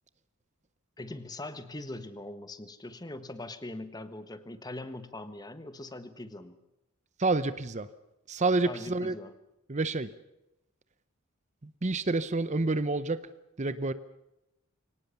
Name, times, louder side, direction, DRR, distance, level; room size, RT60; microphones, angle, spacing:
voice 1, 1.0-6.6 8.6-9.3, left 2 dB, 15° left, 11 dB, 1.3 m, -41 dB
voice 2, 7.2-7.9 8.3-9.1 9.7-10.1 11.6-13.2 13.6-13.9, right 3 dB, 30° right, 14 dB, 0.7 m, -28 dB
24.0 x 18.5 x 7.0 m, 0.91 s
head